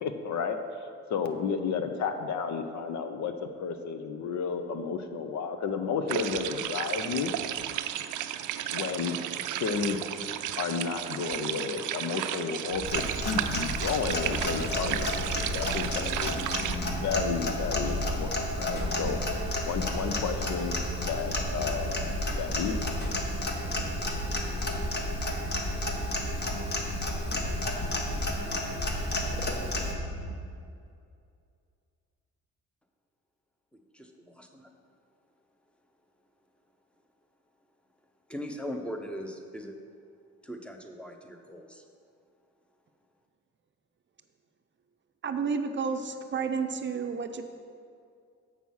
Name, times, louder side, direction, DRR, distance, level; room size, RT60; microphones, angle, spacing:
voice 1, 0.0-7.3 8.7-10.0 10.6-16.4 16.8-19.2 19.6-20.7 21.0-22.8, left 6 dB, 70° left, 8 dB, 0.8 m, -32 dB
sound 1, 6.1-16.8, right 12 dB, 85° right, 0.5 m, -34 dB
sound 2, 12.7-30.3, right 1 dB, 90° left, 1.3 m, -37 dB
Clock, 12.9-29.9, left 1 dB, 35° left, 1.3 m, -32 dB
voice 2, 33.9-34.7 38.3-39.7 40.4-41.8, equal, 5° left, 4 dB, 0.8 m, -40 dB
voice 3, 45.2-47.4, right 5 dB, 40° right, 7 dB, 0.6 m, -31 dB
7.5 x 6.1 x 5.6 m, 2.4 s
cardioid pair, 90°, 30 cm